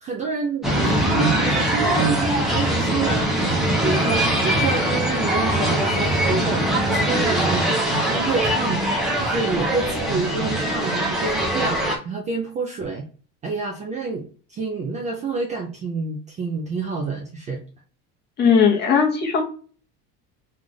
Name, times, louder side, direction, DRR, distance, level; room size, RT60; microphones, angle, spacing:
voice 1, 0.0-6.6 6.9-8.8 9.2-13.0 13.4-14.2 14.5-17.6, right 4 dB, 25° right, 1 dB, 0.3 m, -28 dB
sound 1, 0.6-12.0, right 1 dB, ahead, 0.7 m, -22 dB
voice 2, 18.4-19.4, left 6 dB, 30° left, 0 dB, 0.9 m, -17 dB
3.2 x 2.4 x 3.8 m, 0.40 s
cardioid pair, 165°, 34 cm